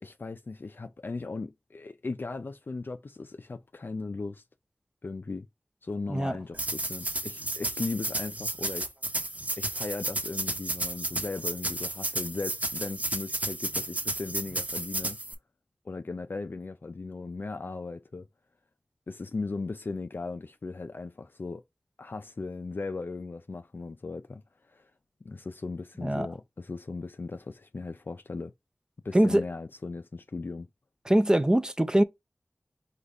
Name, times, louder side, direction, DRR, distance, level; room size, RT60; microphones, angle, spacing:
voice 1, 0.0-4.4 5.0-5.5 5.8-8.9 9.6-15.2 15.9-18.2 19.1-21.6 22.0-24.9 25.2-28.5 29.0-30.7, left 3 dB, 60° left, 0.4 m, -37 dB
sound 1, 6.5-15.3, right 1 dB, 40° right, 1.0 m, -32 dB
voice 2, 29.1-29.4 31.1-32.0, right 1 dB, 20° right, 0.6 m, -23 dB
5.0 x 2.4 x 4.0 m
wide cardioid pair, 55°, 4 cm